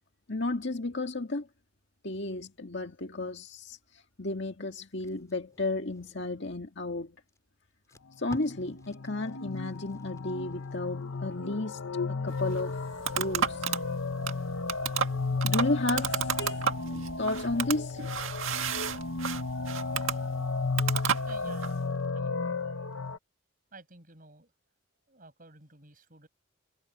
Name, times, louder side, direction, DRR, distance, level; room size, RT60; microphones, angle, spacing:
voice 1, 0.3-1.5 2.0-3.8 4.2-7.2 8.2-11.8 12.1-12.8 13.1-13.6 15.4-16.7 17.2-18.0, left 2 dB, 55° left, 2.0 m, -33 dB
Packing tape duct tape, 4.9-6.6 7.3-7.4 7.7-10.7 11.1-11.3, equal, 15° left, 3.0 m, -52 dB
sound 1, 8.4-23.2, left 3 dB, 70° left, 1.1 m, -34 dB
sound 2, 12.3-21.8, right 7 dB, 65° right, 1.8 m, -33 dB
voice 2, 21.2-21.7 22.1-22.4 23.7-24.5 25.1-26.3, right 2 dB, 40° right, 7.9 m, -52 dB
head